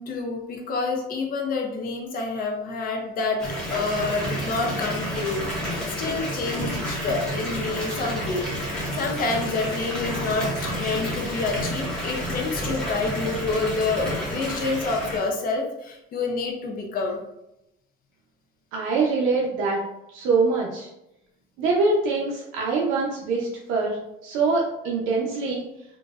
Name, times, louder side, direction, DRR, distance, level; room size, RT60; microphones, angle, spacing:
voice 1, 0.0-3.4 3.7-8.5 8.9-17.2, left 3 dB, 45° left, 2 dB, 0.5 m, -28 dB
Water tap faucet / Bathtub (filling or washing) / Fill (with liquid), 3.4-15.2, equal, 5° left, 0.8 m, -30 dB
voice 2, 18.7-19.8 20.1-20.9 21.6-25.6, right 3 dB, 80° right, -3 dB, 0.6 m, -24 dB
3.8 x 2.1 x 2.4 m, 0.87 s
cardioid pair, 160°, 21 cm